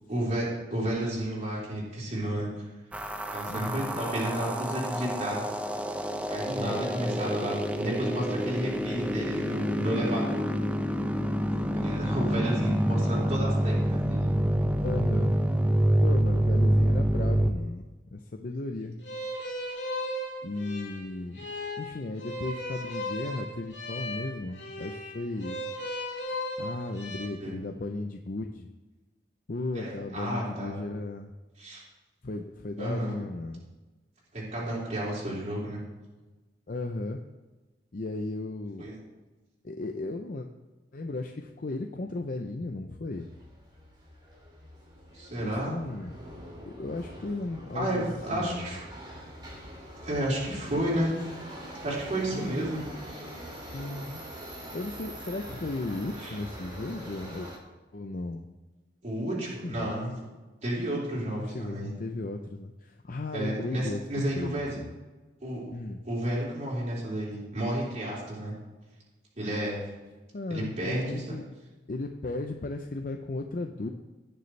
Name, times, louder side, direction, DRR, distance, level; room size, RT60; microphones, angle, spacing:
voice 1, 0.1-2.5 3.3-5.5 6.3-10.4 11.7-14.3 18.8-18.9 27.2-27.6 29.7-30.7 31.6-31.8 32.8-33.2 34.3-35.8 38.8-39.0 45.1-45.7 47.7-48.8 50.0-51.1 51.8-52.8 56.2-56.3 59.0-60.1 60.6-61.9 63.3-64.8 65.4-65.7 66.0-68.5 69.4-69.8 70.5-71.4, right 1 dB, 40° right, -7 dB, 3.8 m, -31 dB
sound 1, 2.9-17.5, equal, 5° right, 0.5 m, -27 dB
voice 2, 3.5-4.0 6.6-6.9 14.8-15.3 16.0-19.0 20.4-21.4 21.8-25.6 26.6-28.7 29.5-31.3 32.2-33.6 36.7-37.2 37.9-38.9 39.6-40.5 40.9-43.3 45.5-46.1 46.6-48.0 48.3-48.8 52.3-52.6 53.7-54.2 54.7-57.5 57.9-58.4 59.6-60.2 61.1-64.0 64.4-64.9 65.7-66.0 70.3-71.4 71.9-73.9, left 2 dB, 50° left, 4 dB, 0.6 m, -35 dB
sound 2, 19.0-27.3, left 1 dB, 70° left, 3.6 m, -36 dB
Subway metro underground, 43.1-57.6, equal, 25° right, 2.4 m, -44 dB
18.0 x 6.8 x 3.3 m, 1.2 s
head